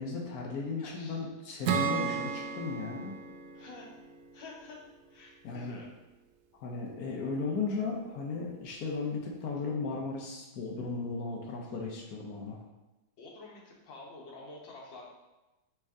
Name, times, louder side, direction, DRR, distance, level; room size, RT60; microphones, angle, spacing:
voice 1, 0.0-3.2 5.4-5.8 6.6-12.6, left 4 dB, 65° left, 0 dB, 1.0 m, -36 dB
voice 2, 0.8-1.2 3.5-4.0 4.3-4.8 5.1-5.9 13.2-15.1, left 3 dB, 80° left, -3 dB, 1.7 m, -48 dB
Acoustic guitar / Strum, 1.7-5.1, right 6 dB, 85° right, 0.7 m, -35 dB
4.4 x 3.2 x 3.6 m, 1.0 s
omnidirectional pair, 2.0 m